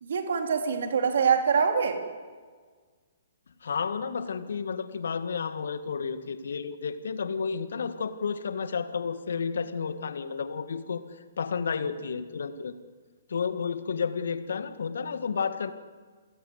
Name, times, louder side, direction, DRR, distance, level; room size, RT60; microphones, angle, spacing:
voice 1, 0.0-2.0, right 6 dB, 60° right, 4 dB, 3.5 m, -24 dB
voice 2, 3.6-11.0 11.4-12.7 13.3-15.7, left 6 dB, 65° left, 10 dB, 1.9 m, -31 dB
28.5 x 17.0 x 8.3 m, 1.5 s
figure-of-eight pair, 125°, 0 cm